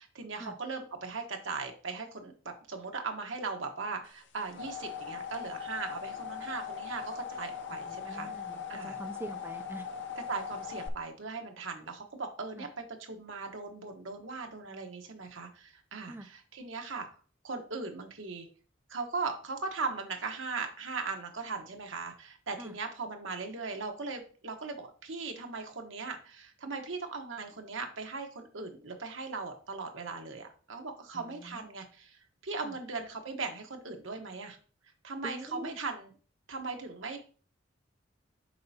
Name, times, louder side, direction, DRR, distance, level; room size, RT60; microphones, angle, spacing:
voice 1, 0.0-8.3 8.7-9.0 10.3-17.1 17.4-18.5 18.9-34.6 35.0-36.1 36.5-37.2, right 4 dB, 70° right, 4 dB, 1.2 m, -39 dB
sound 1, 4.2-10.9, left 7 dB, 65° left, 0.7 m, -40 dB
voice 2, 7.7-9.9 12.6-12.7 16.1-16.3 22.6-22.7 31.1-31.7 32.6-32.7 35.2-35.7, right 1 dB, 10° right, 7 dB, 0.4 m, -44 dB
7.6 x 5.5 x 2.8 m, 0.40 s
head